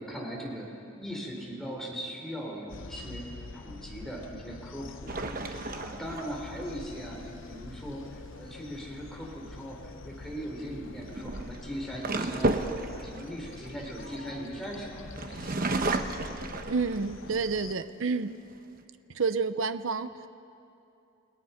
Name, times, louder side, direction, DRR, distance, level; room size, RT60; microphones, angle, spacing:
voice 1, 0.0-12.5 12.9-15.6, equal, ahead, -2 dB, 4.0 m, -39 dB
sound 1, 2.7-17.7, left 3 dB, 65° left, 0.7 m, -46 dB
sound 2, 5.1-6.7 9.6-9.9 10.9-14.7 15.2-17.3 17.8-17.9 18.3-18.8, right 2 dB, 45° right, 1.0 m, -32 dB
voice 2, 16.7-18.4 19.1-20.3, right 4 dB, 70° right, 11 dB, 0.7 m, -29 dB
29.5 x 18.5 x 5.8 m, 2.7 s
head